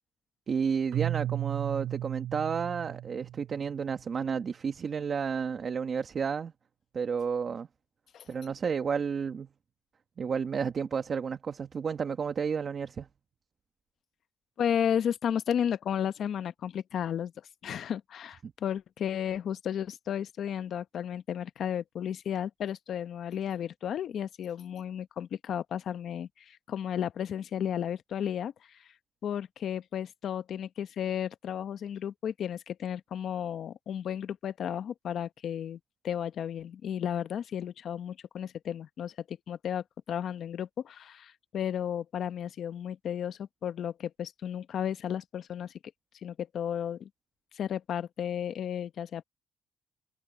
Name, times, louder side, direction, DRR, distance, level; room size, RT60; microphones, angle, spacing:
voice 1, 0.5-6.5 6.9-7.7 8.3-9.5 10.2-13.1 18.4-18.5, right 6 dB, 50° right, 1.5 m, -31 dB
Keyboard (musical), 0.9-3.9, right 13 dB, 80° right, 5.7 m, -35 dB
voice 2, 14.6-17.3 17.6-28.9 29.2-45.7 46.2-47.1 47.5-49.2, left 9 dB, 65° left, 0.9 m, -33 dB
cardioid pair, 90°, 0 cm